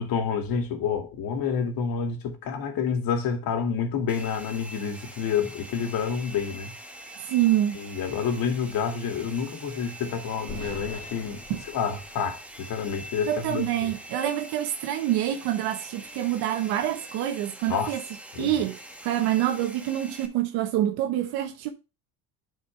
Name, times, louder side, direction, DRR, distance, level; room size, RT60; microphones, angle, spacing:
voice 1, 0.0-6.7 7.7-11.4 11.7-13.9 17.7-17.9 18.3-18.6, left 6 dB, 65° left, 2.2 m, -28 dB
Domestic sounds home sounds, 4.1-20.3, right 1 dB, 5° right, 1.3 m, -44 dB
voice 2, 7.2-7.8 11.5-11.6 13.3-18.0 18.4-21.7, right 12 dB, 80° right, 1.4 m, -26 dB
sound 1, 10.5-13.5, equal, 15° left, 2.7 m, -44 dB
10.5 x 5.1 x 3.3 m
cardioid pair, 135°, 38 cm